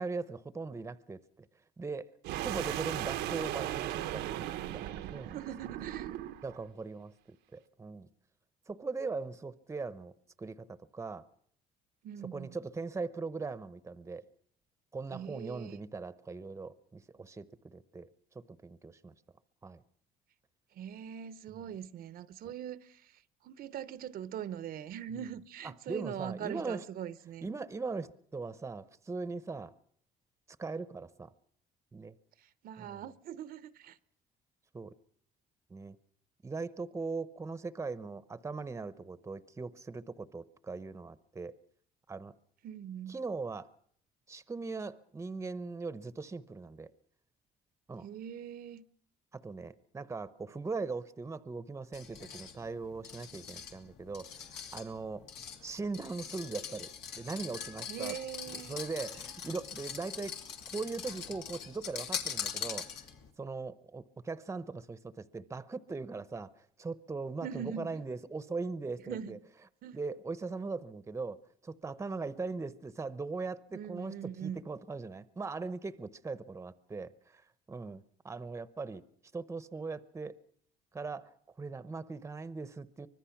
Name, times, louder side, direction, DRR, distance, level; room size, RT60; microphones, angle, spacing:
voice 1, 0.0-1.5 1.8-2.1 2.4-4.5 4.7-5.4 6.4-7.1 7.5-8.1 8.7-10.1 10.4-11.3 12.2-14.2 14.9-18.1 18.3-19.1 19.6-19.8 21.5-21.6 25.9-26.8 27.4-29.7 30.6-31.3 31.9-32.2 32.8-33.0 34.7-34.9 35.7-36.0 36.4-41.6 42.1-42.3 43.1-43.7 44.3-46.9 47.9-48.1 49.3-55.2 55.6-56.9 57.1-58.2 58.5-60.3 60.7-62.9 63.4-69.4 69.9-79.0 79.3-80.4 80.9-83.1, right 4 dB, 15° right, 0.8 m, -40 dB
sound 1, 2.2-6.6, right 13 dB, 90° right, 1.0 m, -37 dB
voice 2, 5.3-6.2 12.0-12.6 15.1-15.8 20.7-27.5 32.4-34.0 42.6-43.2 48.0-48.8 57.9-58.8 67.4-68.0 69.1-69.4 69.8-70.0 73.7-74.6, right 9 dB, 60° right, 0.8 m, -42 dB
sound 2, 51.9-63.3, left 7 dB, 85° left, 2.7 m, -42 dB
24.5 x 20.5 x 5.9 m
cardioid pair, 110°, 17 cm